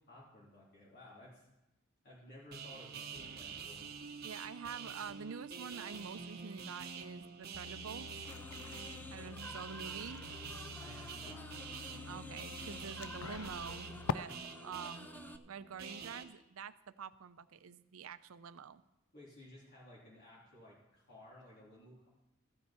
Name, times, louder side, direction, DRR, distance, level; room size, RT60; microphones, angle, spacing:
voice 1, 0.0-1.5 2.0-3.9 10.8-11.5 19.1-22.1, left 1 dB, 50° left, -7 dB, 3.2 m, -56 dB
sound 1, 2.5-16.2, right 5 dB, 50° right, 0.9 m, -47 dB
voice 2, 4.2-8.1 9.1-10.3 12.1-13.9 14.1-15.1 15.5-18.8, right 6 dB, 85° right, 14 dB, 0.5 m, -47 dB
sound 2, 7.5-14.1, left 7 dB, 80° left, 0.4 m, -46 dB
sound 3, 8.3-15.4, left 2 dB, 10° left, 0.3 m, -52 dB
14.5 x 8.7 x 4.4 m, 0.92 s
head